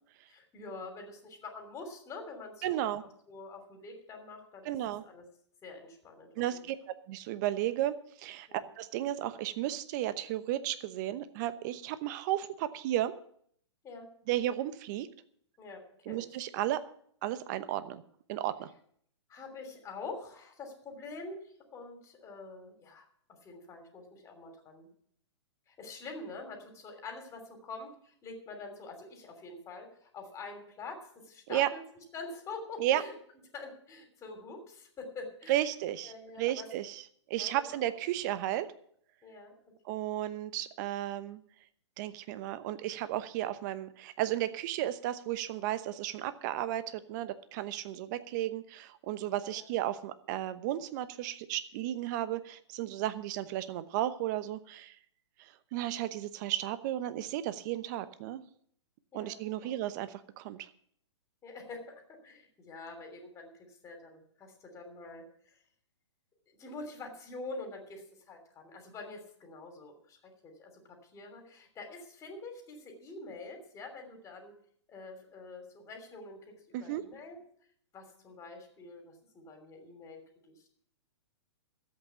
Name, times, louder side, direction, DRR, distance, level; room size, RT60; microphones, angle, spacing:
voice 1, 0.3-4.7 5.0-5.3 5.6-6.3 8.5-8.7 13.8-14.1 15.6-16.3 19.3-23.0 23.4-24.9 25.7-31.8 32.1-33.1 33.5-35.6 36.0-36.7 37.4-37.9 39.2-39.5 39.9-40.0 49.4-49.7 59.1-59.9 61.4-65.6 66.6-74.5 74.9-77.4 77.9-80.2 80.5-80.7, left 3 dB, 20° left, 4 dB, 3.1 m, -46 dB
voice 2, 2.6-3.0 4.6-5.0 6.4-8.5 8.8-13.1 14.3-15.1 16.1-16.8 17.2-18.0 18.3-18.7 31.5-31.7 32.8-33.0 35.5-38.7 39.8-41.4 42.0-54.9 55.4-58.4 59.1-60.7 76.7-77.0, right 13 dB, 40° right, 13 dB, 0.9 m, -34 dB
13.0 x 8.4 x 7.0 m, 0.63 s
hypercardioid pair, 130°, 15 cm